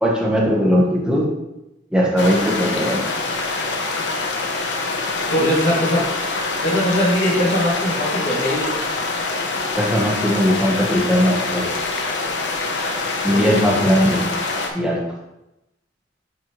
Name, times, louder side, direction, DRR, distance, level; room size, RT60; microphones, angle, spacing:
voice 1, 0.0-1.3 1.9-3.2 9.8-11.7 13.2-14.3 14.7-15.0, equal, 5° right, -3 dB, 1.0 m, -19 dB
sound 1, 2.2-14.7, left 3 dB, 70° left, 0.8 m, -25 dB
voice 2, 5.3-6.0 6.6-8.7 13.3-13.6, equal, 90° left, -9 dB, 2.1 m, -20 dB
7.6 x 4.3 x 3.1 m, 0.93 s
head